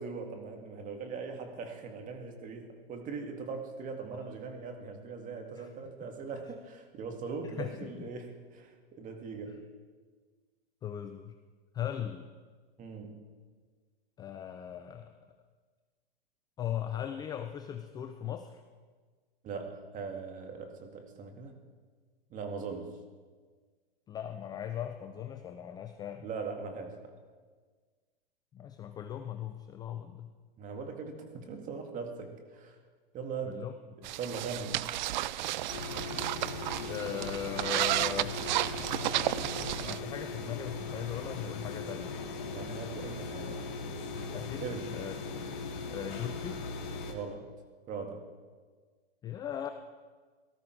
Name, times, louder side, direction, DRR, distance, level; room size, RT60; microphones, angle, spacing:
voice 1, 0.0-9.6 12.8-13.3 19.4-21.6 22.3-22.9 26.2-27.2 30.6-32.8 33.1-33.7 34.2-34.9 42.5-43.6 44.6-45.0 47.1-47.5 47.9-48.3, right 5 dB, 25° right, 4 dB, 2.1 m, -40 dB
voice 2, 7.4-8.1 9.5-9.6 10.8-11.4 11.7-12.3 14.2-15.2 16.6-18.6 24.1-26.3 28.5-30.3 33.4-34.1 36.9-38.4 39.8-42.2 44.3-45.1 45.9-46.6 49.2-49.7, left 9 dB, 15° left, 7 dB, 0.4 m, -39 dB
sound 1, 34.0-40.0, right 15 dB, 50° right, 0.5 m, -33 dB
sound 2, 35.7-47.1, left 3 dB, 45° left, 2.4 m, -39 dB
18.0 x 13.0 x 4.6 m, 1.5 s
hypercardioid pair, 130°, 30 cm